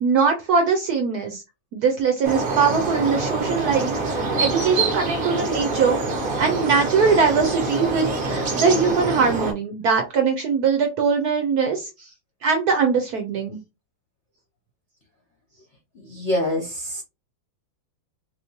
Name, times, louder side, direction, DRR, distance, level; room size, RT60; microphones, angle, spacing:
voice 1, 0.0-1.4 1.7-6.0 6.4-12.1 12.4-13.6, right 5 dB, 70° right, 4 dB, 0.9 m, -21 dB
sound 1, 2.2-9.5, right 3 dB, 50° right, 0.6 m, -25 dB
voice 2, 16.0-17.0, left 1 dB, 60° left, -1 dB, 0.7 m, -26 dB
3.1 x 3.0 x 2.8 m, 0.26 s
omnidirectional pair, 2.2 m